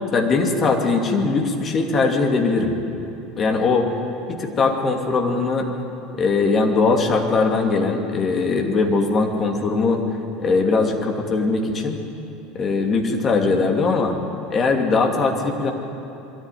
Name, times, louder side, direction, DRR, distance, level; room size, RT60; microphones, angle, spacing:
voice 1, 0.1-2.7 3.4-3.9 4.3-5.7 6.2-10.0 10.4-12.0 12.5-14.2 14.5-15.7, left 4 dB, 35° left, 3 dB, 2.7 m, -20 dB
21.5 x 13.5 x 9.5 m, 2.9 s
figure-of-eight pair, 70°, 0 cm